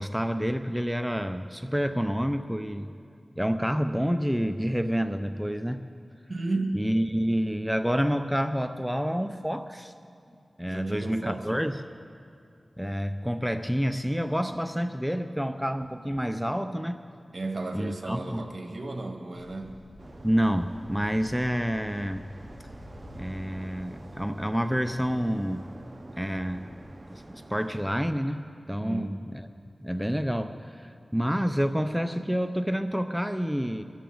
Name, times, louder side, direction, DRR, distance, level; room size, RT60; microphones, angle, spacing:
voice 1, 0.0-2.9 3.4-5.8 6.7-9.9 10.6-11.9 12.8-17.0 17.7-18.5 20.2-22.3 23.1-25.6 26.2-26.7 27.1-29.5 29.8-33.8, equal, 5° right, 9 dB, 0.6 m, -28 dB
voice 2, 6.3-6.9 10.6-11.7 17.3-19.8 28.8-29.2, right 2 dB, 65° right, 2 dB, 1.8 m, -34 dB
sound 1, 19.3-27.8, equal, 70° left, 2.1 m, -51 dB
sound 2, 20.0-28.0, right 2 dB, 40° right, 0.8 m, -47 dB
23.5 x 14.0 x 3.9 m, 2.5 s
cardioid pair, 45°, 0 cm